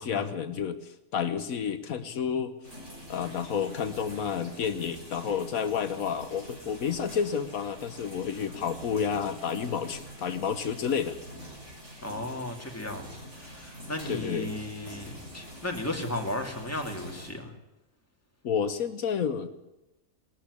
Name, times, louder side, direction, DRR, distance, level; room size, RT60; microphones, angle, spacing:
voice 1, 0.0-2.5 3.1-11.2 14.1-14.5 18.4-19.5, left 7 dB, 75° left, 10 dB, 1.4 m, -30 dB
sound 1, 2.6-17.3, equal, 55° right, 7.1 m, -46 dB
voice 2, 12.0-17.5, left 1 dB, 10° left, 2 dB, 2.6 m, -35 dB
19.5 x 13.5 x 9.8 m, 0.95 s
omnidirectional pair, 1.5 m